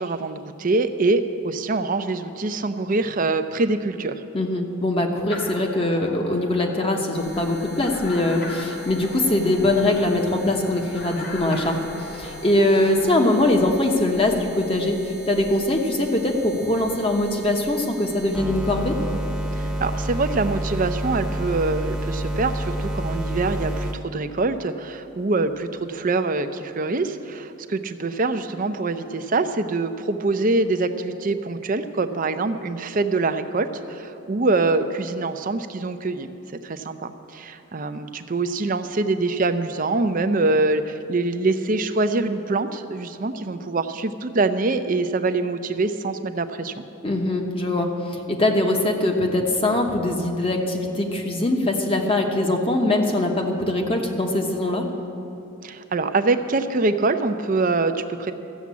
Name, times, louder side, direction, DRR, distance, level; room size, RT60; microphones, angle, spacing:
voice 1, 0.0-4.2 19.5-36.3 36.6-46.8 55.6-58.3, right 3 dB, 40° right, 9 dB, 0.5 m, -24 dB
voice 2, 4.3-11.8 12.1-19.0 47.0-54.9, left 1 dB, 25° left, 2 dB, 1.1 m, -22 dB
sound 1, 5.3-13.5, left 2 dB, 45° left, 1.3 m, -38 dB
sound 2, 7.1-23.9, right 1 dB, 5° right, 1.0 m, -32 dB
14.0 x 7.2 x 8.4 m, 2.9 s
head